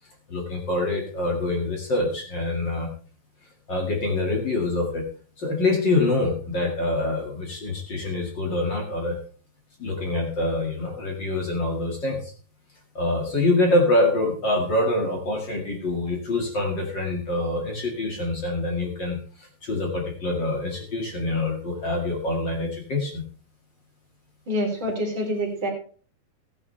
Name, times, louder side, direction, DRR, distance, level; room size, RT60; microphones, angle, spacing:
voice 1, 0.3-2.9 3.7-5.0 5.4-9.2 9.8-12.3 12.9-23.2, left 2 dB, 35° left, 1 dB, 2.2 m, -25 dB
voice 2, 24.5-25.7, equal, 30° right, -2 dB, 4.4 m, -26 dB
15.0 x 10.5 x 3.3 m, 0.41 s
omnidirectional pair, 4.3 m